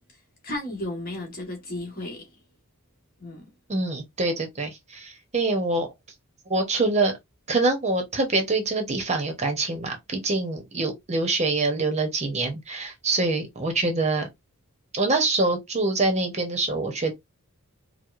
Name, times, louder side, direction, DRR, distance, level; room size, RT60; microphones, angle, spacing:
voice 1, 0.1-2.4 3.2-3.5, left 1 dB, 40° left, 1.3 m, -35 dB
voice 2, 3.7-5.9 6.5-7.2 7.5-14.3 14.9-17.1, right 3 dB, 30° right, 0.8 m, -25 dB
4.6 x 2.1 x 2.4 m
head